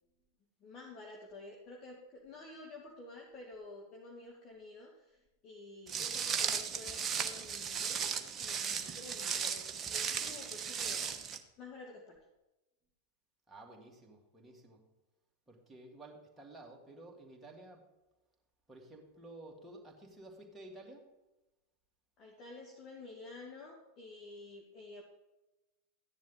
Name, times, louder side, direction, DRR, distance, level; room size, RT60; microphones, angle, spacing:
voice 1, 0.6-5.2 5.4-11.1 11.6-12.2 22.2-25.0, left 2 dB, 35° left, -1 dB, 1.9 m, -51 dB
Walk footsteps, 5.9-11.4, right 7 dB, 25° right, 1.1 m, -36 dB
voice 2, 13.5-14.9 15.5-17.8 18.7-21.1, right 2 dB, 5° right, -2 dB, 2.7 m, -53 dB
14.0 x 10.5 x 3.9 m, 1.0 s
figure-of-eight pair, 90°, 0 cm